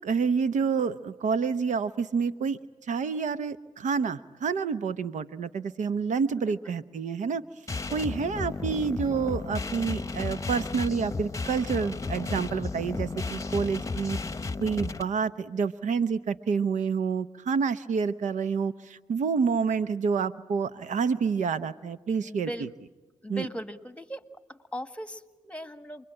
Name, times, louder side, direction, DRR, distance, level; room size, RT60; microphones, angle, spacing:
voice 1, 0.0-2.6 2.9-7.4 7.9-14.2 14.6-22.5 23.3-23.5, right 5 dB, 75° right, 14 dB, 0.8 m, -28 dB
sound 1, 7.7-15.0, left 3 dB, 25° left, 1.0 m, -33 dB
voice 2, 22.2-22.7 23.2-26.0, equal, 10° left, 12 dB, 1.6 m, -39 dB
28.5 x 22.0 x 8.9 m, 1.2 s
supercardioid pair, 50°, 13 cm